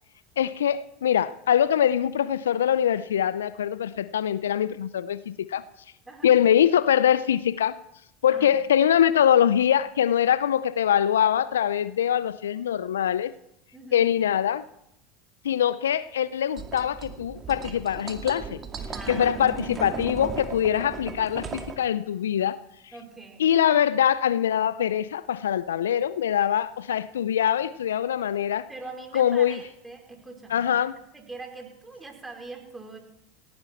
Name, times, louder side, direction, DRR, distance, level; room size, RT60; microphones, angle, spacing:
voice 1, 0.4-5.6 6.2-7.8 8.2-13.3 13.9-14.6 15.4-18.6 19.1-22.6 23.4-28.7 29.1-29.6 30.5-30.9, left 9 dB, 80° left, 17 dB, 0.5 m, -23 dB
voice 2, 13.7-14.1 18.9-20.0 22.9-23.5 28.7-30.7 31.1-33.0, right 3 dB, 15° right, 3 dB, 4.8 m, -43 dB
sound 1, 16.6-21.8, right 5 dB, 30° right, 2.2 m, -36 dB
18.5 x 17.5 x 4.5 m, 0.77 s
hypercardioid pair, 80°, 0 cm